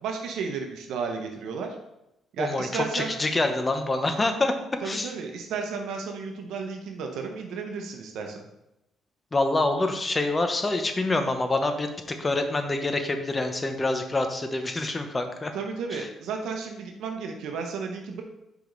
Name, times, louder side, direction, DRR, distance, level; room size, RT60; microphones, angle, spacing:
voice 1, 0.0-1.8 2.3-3.1 4.8-8.5 15.5-18.2, right 5 dB, 80° right, 3 dB, 0.7 m, -33 dB
voice 2, 2.4-4.5 4.8-5.1 9.3-15.5 15.9-16.1, left 2 dB, 25° left, 6 dB, 0.8 m, -26 dB
5.0 x 5.0 x 3.9 m, 0.87 s
cardioid pair, 90°, 0 cm